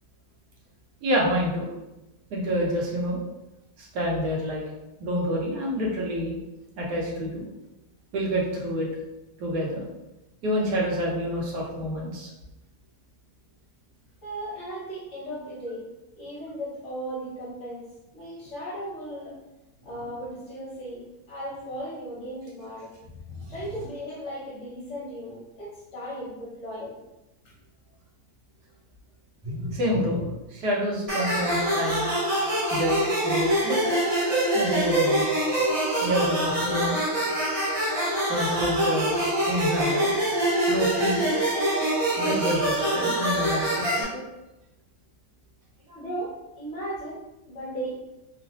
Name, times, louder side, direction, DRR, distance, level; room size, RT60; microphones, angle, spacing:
voice 1, 1.0-1.7 2.3-3.2 3.8-4.6 5.0-6.4 6.8-7.5 8.1-8.9 9.4-9.8 10.4-12.3 23.3-23.4 29.4-32.0 32.7-33.9 34.5-35.3 36.0-37.0 38.3-40.2 40.7-41.2 42.2-44.2 45.9-46.0, equal, 80° right, -3 dB, 1.4 m, -28 dB
voice 2, 14.2-15.9 16.2-19.3 19.8-22.9 23.5-27.0 45.9-48.0, right 1 dB, 55° left, -7 dB, 1.0 m, -36 dB
sound 1, 31.1-44.0, right 1 dB, 25° right, 0.8 m, -25 dB
3.1 x 2.1 x 2.8 m, 0.97 s
omnidirectional pair, 1.7 m